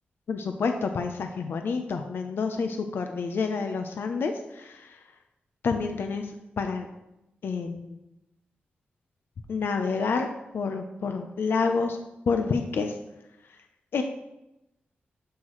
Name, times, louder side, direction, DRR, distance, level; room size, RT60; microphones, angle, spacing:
voice 1, 0.3-5.0 5.6-6.3 6.6-6.9 7.4-8.0 9.5-10.3 10.5-12.0 12.3-12.9 13.9-14.0, left 4 dB, 75° left, 5 dB, 0.6 m, -28 dB
12.5 x 5.8 x 3.1 m, 0.91 s
wide cardioid pair, 95°, 4 cm